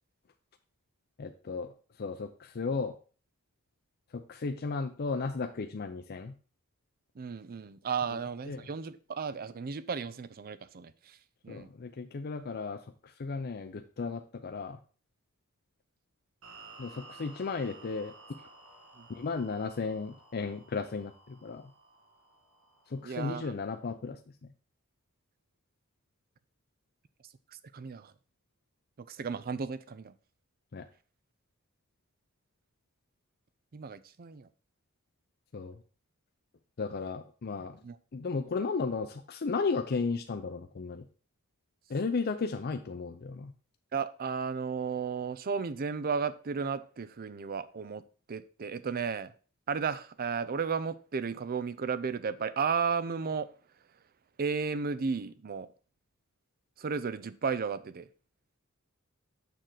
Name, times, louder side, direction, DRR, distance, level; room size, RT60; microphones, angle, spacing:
voice 1, 1.2-1.7 2.0-3.0 4.1-6.4 8.5-8.6 11.5-14.8 16.8-18.1 19.1-21.6 22.9-24.5 30.7-30.9 35.5-35.8 36.8-37.8 38.1-41.1 41.9-43.5, left 4 dB, 50° left, 0.5 m, -34 dB
voice 2, 7.2-11.2 11.4-11.7 19.0-19.1 23.0-23.5 27.7-28.1 29.1-30.1 33.7-34.5 37.8-38.0 43.9-48.0 48.3-49.3 49.7-53.5 54.4-55.7 56.8-58.1, right 5 dB, 45° right, 0.5 m, -34 dB
sound 1, 16.4-23.6, right 3 dB, 70° right, 2.1 m, -54 dB
6.6 x 6.3 x 3.9 m
head